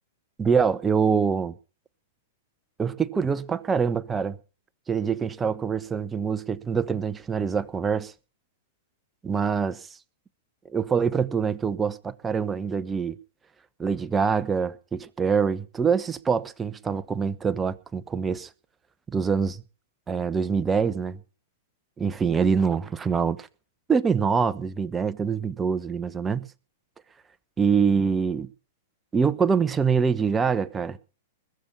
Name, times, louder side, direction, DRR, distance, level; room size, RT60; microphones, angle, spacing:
voice 1, 0.4-1.5 2.8-4.4 4.9-8.1 9.2-9.9 10.7-13.2 13.8-18.5 19.1-19.6 20.1-21.2 22.0-23.5 23.9-26.5 27.6-28.5 29.1-31.0, right 6 dB, 15° right, 1.0 m, -25 dB
21.0 x 7.2 x 7.1 m
hypercardioid pair, 115°, 0 cm